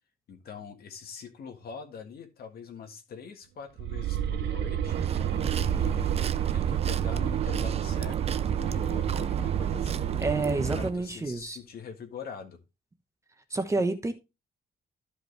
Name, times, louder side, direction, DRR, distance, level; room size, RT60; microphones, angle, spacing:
voice 1, 0.3-5.0 5.6-10.1 10.8-12.6 13.8-13.9, left 6 dB, 60° left, 1.8 m, -43 dB
sound 1, 3.8-11.0, right 10 dB, 80° right, 0.7 m, -30 dB
sound 2, 4.9-10.9, right 8 dB, 35° right, 0.5 m, -32 dB
voice 2, 10.2-11.6 13.5-14.1, right 3 dB, 15° right, 1.0 m, -29 dB
12.5 x 5.3 x 3.3 m
cardioid pair, 150°, 18 cm